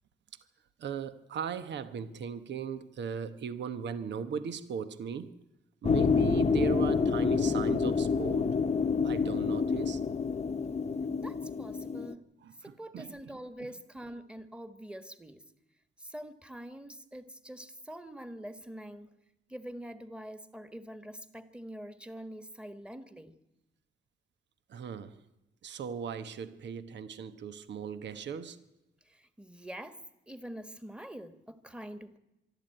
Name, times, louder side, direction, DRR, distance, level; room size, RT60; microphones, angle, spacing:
voice 1, 0.8-5.3 5.8-8.5 9.0-10.0 12.4-13.7 24.7-25.2 25.6-28.6, right 7 dB, 80° right, 1.1 m, -38 dB
sound 1, 5.8-12.1, left 5 dB, 35° left, 0.9 m, -28 dB
voice 2, 11.2-12.2 12.6-15.4 16.0-19.1 19.5-23.3 29.1-30.0 30.3-32.2, right 1 dB, 5° right, 1.5 m, -45 dB
24.5 x 12.5 x 9.0 m
cardioid pair, 95°, 18 cm